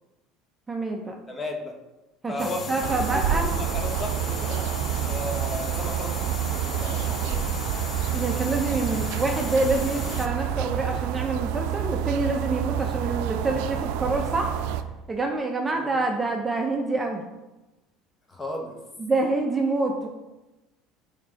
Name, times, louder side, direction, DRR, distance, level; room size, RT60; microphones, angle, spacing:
voice 1, 0.7-1.2 2.2-3.5 8.1-14.6 15.1-17.2 19.0-20.1, right 3 dB, 15° right, 1 dB, 0.7 m, -26 dB
voice 2, 1.3-1.8 2.3-4.6 5.1-7.5 15.7-16.2 18.3-18.8, left 1 dB, 20° left, 2 dB, 1.2 m, -35 dB
sound 1, 2.4-10.3, left 6 dB, 35° left, 0.6 m, -36 dB
sound 2, 2.8-14.8, right 10 dB, 75° right, 0.4 m, -28 dB
9.2 x 3.3 x 4.0 m, 1.1 s
supercardioid pair, 115°, 0 cm